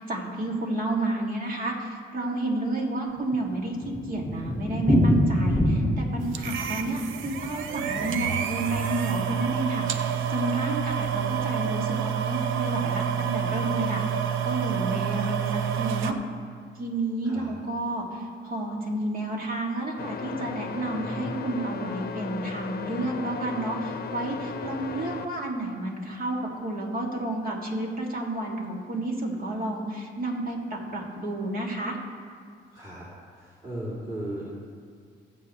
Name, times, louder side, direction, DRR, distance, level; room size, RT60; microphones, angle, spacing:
voice 1, 0.0-14.0 14.4-16.2 16.7-31.9, right 2 dB, 45° right, -1 dB, 2.5 m, -31 dB
Thunder, 3.2-9.2 9.5-9.6 9.9-10.0 10.2-10.3 10.9-11.2, left 1 dB, ahead, 1.8 m, -26 dB
sound 1, 6.3-16.1, right 8 dB, 85° right, 0.7 m, -28 dB
sound 2, 20.0-25.2, left 6 dB, 50° left, 0.8 m, -36 dB
voice 2, 32.7-33.0 33.3-34.4, right 1 dB, 20° right, -8 dB, 3.0 m, -36 dB
20.5 x 7.4 x 3.2 m, 2.1 s
cardioid pair, 90°, 20 cm